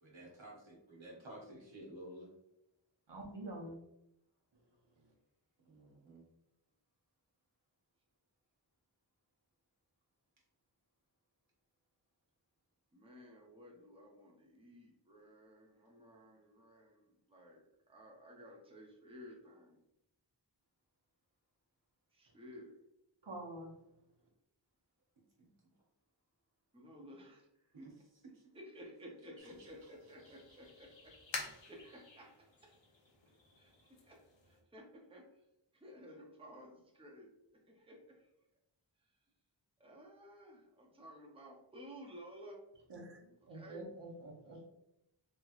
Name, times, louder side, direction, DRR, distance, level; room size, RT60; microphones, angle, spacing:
voice 1, 0.0-2.3 5.6-6.2 25.4-25.5 27.7-27.9 28.3-28.4 29.4-29.5 30.3-30.4, right 1 dB, 85° right, -3 dB, 1.1 m, -52 dB
voice 2, 3.1-3.8 5.0-5.1 23.2-23.7 42.9-44.6, right 1 dB, 60° right, -2 dB, 0.9 m, -47 dB
voice 3, 12.9-19.8 22.1-22.8 26.7-27.5 28.5-32.8 33.6-33.7 34.1-34.2 34.4-35.4 35.7-37.3 37.7-38.3 39.8-42.6 43.5-43.9, equal, 10° right, -1 dB, 0.6 m, -55 dB
sound 1, 29.4-34.6, left 3 dB, 70° left, 0.8 m, -50 dB
3.1 x 2.9 x 2.4 m, 0.85 s
wide cardioid pair, 65°, 46 cm